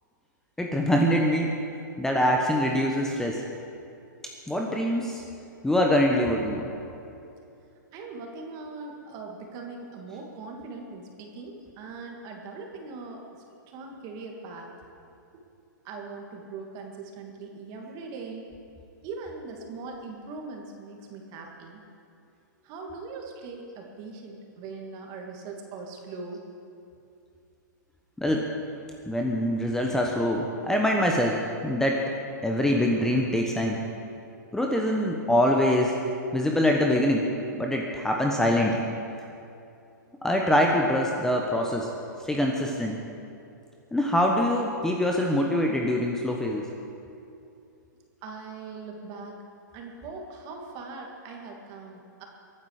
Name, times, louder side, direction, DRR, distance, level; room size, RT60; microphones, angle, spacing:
voice 1, 0.6-1.6 2.0-3.5 4.5-5.2 5.6-6.7 28.2-28.5 29.1-32.0 32.4-33.8 34.5-36.0 36.3-37.3 37.6-38.9 40.2-41.9 42.2-43.0 43.9-46.7, left 1 dB, 5° left, 0 dB, 1.1 m, -24 dB
voice 2, 7.9-13.2 13.7-14.7 15.3-15.4 15.8-18.5 19.0-21.8 22.6-26.4 48.2-49.4 49.7-52.2, right 4 dB, 35° right, 1 dB, 2.5 m, -40 dB
23.0 x 9.4 x 5.0 m, 2.6 s
hypercardioid pair, 130°, 10 cm